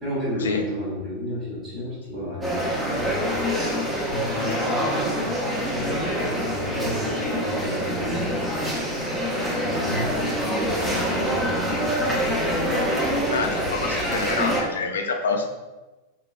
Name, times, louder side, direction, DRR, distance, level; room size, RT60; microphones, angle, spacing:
voice 1, 0.0-3.3 4.1-5.1 5.7-8.4 9.5-12.6, left 1 dB, 25° right, -6 dB, 1.3 m, -32 dB
sound 1, 2.4-14.6, equal, 10° right, 0.8 m, -25 dB
voice 2, 13.3-15.5, left 4 dB, 65° left, 3 dB, 0.5 m, -27 dB
4.9 x 3.0 x 2.2 m, 1.1 s
figure-of-eight pair, 90°, 0 cm